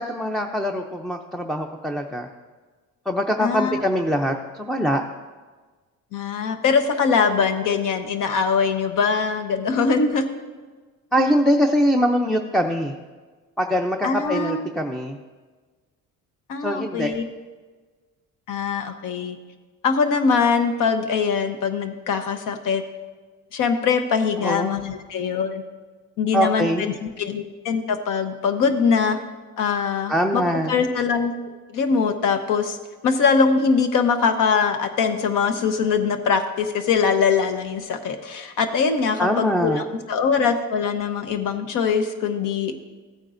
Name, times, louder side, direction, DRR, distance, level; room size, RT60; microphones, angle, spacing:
voice 1, 0.0-2.3 3.1-5.0 11.1-12.9 13.6-15.2 16.6-17.1 24.4-24.8 26.3-26.9 30.1-30.7 39.2-39.9, equal, ahead, 4 dB, 0.4 m, -23 dB
voice 2, 3.4-3.8 6.1-10.2 14.0-14.7 16.5-17.2 18.5-19.4 19.8-22.8 23.5-25.6 26.2-29.2 29.6-31.3 31.7-32.8 33.0-42.8, left 5 dB, 70° left, 7 dB, 1.0 m, -22 dB
15.0 x 9.1 x 2.6 m, 1.4 s
cardioid pair, 135°, 33 cm